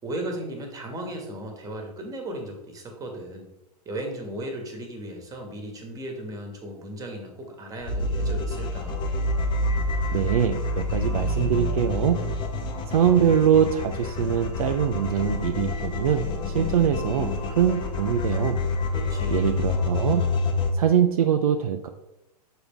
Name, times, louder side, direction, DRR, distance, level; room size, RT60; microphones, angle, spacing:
voice 1, 0.0-3.5 3.8-9.0 18.9-19.5, right 1 dB, 15° right, 3 dB, 1.4 m, -36 dB
sound 1, 7.8-20.7, left 2 dB, 25° left, 0.9 m, -27 dB
voice 2, 10.1-12.2 12.9-18.6 19.3-20.2 20.7-21.9, right 9 dB, 60° right, 7 dB, 0.5 m, -23 dB
6.6 x 4.1 x 3.6 m, 0.89 s
figure-of-eight pair, 105°, 21 cm